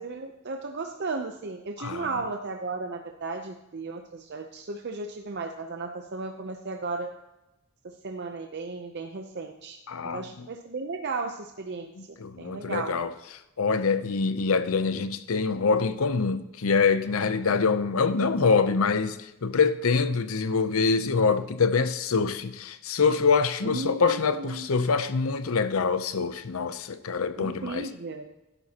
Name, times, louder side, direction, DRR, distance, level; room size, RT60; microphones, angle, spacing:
voice 1, 0.0-7.1 7.8-9.8 10.0-11.9 12.4-12.9 23.6-24.8 27.4-28.3, right 3 dB, 50° right, 0.6 m, -35 dB
voice 2, 9.9-10.2 12.0-13.1 13.6-27.9, left 5 dB, 75° left, 0.6 m, -25 dB
12.5 x 11.0 x 2.9 m
head